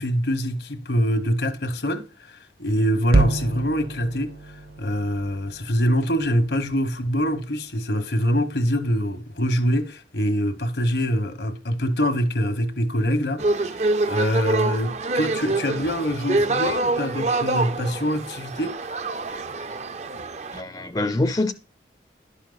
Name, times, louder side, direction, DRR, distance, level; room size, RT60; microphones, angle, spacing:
voice 1, 0.0-4.3 4.8-18.8, equal, 80° left, 1.4 m, -24 dB
sound 1, 3.1-7.4, right 2 dB, 65° right, 1.0 m, -28 dB
sound 2, 13.4-20.6, right 2 dB, 40° right, 0.5 m, -25 dB
voice 2, 20.5-21.5, left 2 dB, 20° left, 0.5 m, -24 dB
11.5 x 6.4 x 4.0 m
head